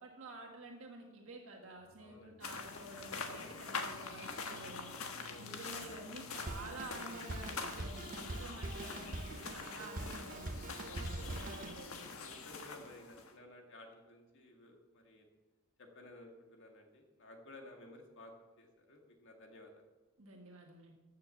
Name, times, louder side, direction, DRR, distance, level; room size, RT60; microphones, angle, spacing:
voice 1, 0.0-4.9 5.4-12.1 20.2-20.9, right 2 dB, 65° right, 1 dB, 1.6 m, -50 dB
sound 1, 1.8-9.6, left 2 dB, 35° left, 1.6 m, -63 dB
voice 2, 2.0-2.4 3.2-3.5 5.1-5.5 12.2-15.3 15.8-19.8, left 2 dB, 60° left, 2 dB, 2.1 m, -55 dB
sound 2, 2.4-13.3, left 4 dB, 80° left, 1.4 m, -45 dB
Drum kit, 6.5-11.9, right 2 dB, 40° right, 0.7 m, -44 dB
15.0 x 6.6 x 7.1 m, 1.1 s
head